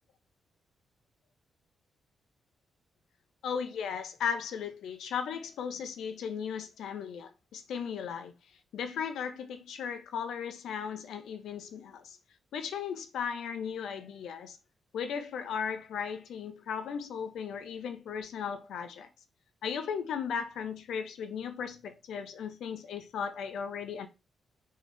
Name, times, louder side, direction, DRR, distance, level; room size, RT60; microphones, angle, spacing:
voice 1, 3.4-8.3 8.7-12.2 12.5-14.6 14.9-19.1 19.6-24.1, left 7 dB, 80° left, 0.7 m, -36 dB
4.6 x 2.9 x 3.4 m
wide cardioid pair, 145°, 0 cm